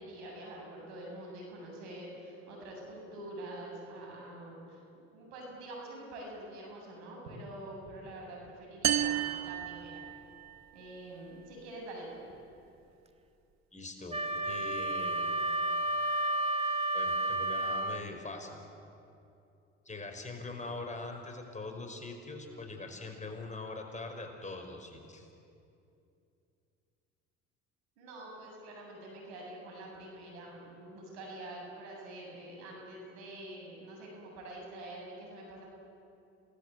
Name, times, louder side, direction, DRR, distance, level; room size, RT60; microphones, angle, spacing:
voice 1, 0.0-4.8 5.1-10.0 10.7-12.3 28.0-35.6, right 1 dB, 85° right, -1 dB, 7.8 m, -46 dB
sound 1, 8.8-10.6, right 11 dB, 55° right, 1.3 m, -32 dB
voice 2, 13.7-15.3 16.9-18.6 19.9-25.3, left 3 dB, 20° left, 3 dB, 5.2 m, -42 dB
Wind instrument woodwind instrument, 14.1-18.1, right 2 dB, 20° right, 1.9 m, -31 dB
28.0 x 19.5 x 8.2 m, 2.7 s
hypercardioid pair, 70°, 33 cm